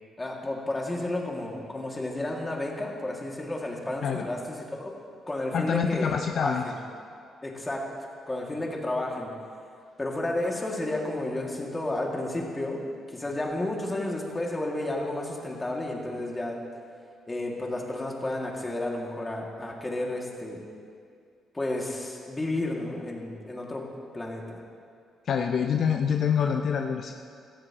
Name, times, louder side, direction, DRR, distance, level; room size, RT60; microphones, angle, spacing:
voice 1, 0.2-4.9 5.3-6.8 7.4-7.9 8.3-9.3 10.0-12.8 13.1-16.6 17.3-20.6 21.5-24.6, left 1 dB, 20° left, -1 dB, 2.3 m, -32 dB
voice 2, 5.5-6.6 25.3-27.1, left 7 dB, 60° left, 4 dB, 0.6 m, -26 dB
17.5 x 14.0 x 3.0 m, 2.3 s
cardioid pair, 90°, 0 cm